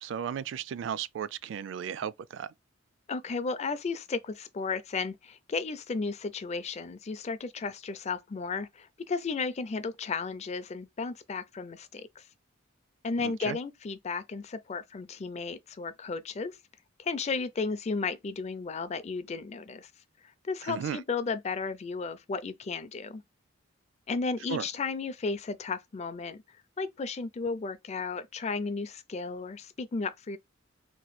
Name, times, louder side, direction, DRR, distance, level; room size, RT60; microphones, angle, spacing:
voice 1, 0.0-2.5 13.2-13.6 20.7-21.0 24.5-24.7, right 8 dB, 65° right, 0.3 m, -35 dB
voice 2, 3.1-12.2 13.0-16.6 17.0-19.9 20.4-23.2 24.1-26.4 26.8-30.4, left 4 dB, 35° left, 0.4 m, -34 dB
3.2 x 3.0 x 2.2 m
head